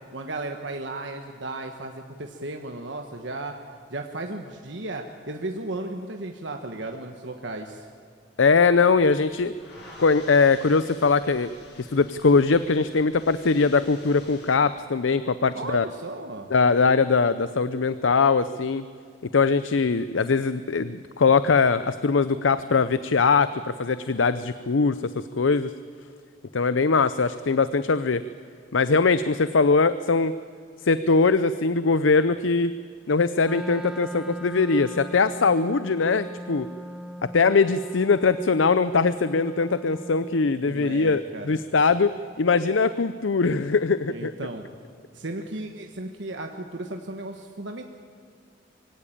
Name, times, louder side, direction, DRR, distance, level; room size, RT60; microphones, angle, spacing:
voice 1, 0.1-3.5 3.9-7.8 15.5-16.5 40.6-41.6 44.1-44.6 45.1-47.8, right 2 dB, 70° right, 4 dB, 1.4 m, -35 dB
voice 2, 8.4-9.5 10.0-11.5 11.8-15.9 16.5-18.8 19.3-25.7 26.5-28.2 28.7-30.3 30.8-32.8 33.1-36.7 37.3-44.3, left 4 dB, 85° left, 14 dB, 0.6 m, -21 dB
sound 1, 9.3-14.6, left 1 dB, 60° left, 7.4 m, -50 dB
Wind instrument woodwind instrument, 33.4-40.6, equal, 5° right, 1.2 m, -39 dB
24.0 x 17.0 x 8.8 m, 2.2 s
head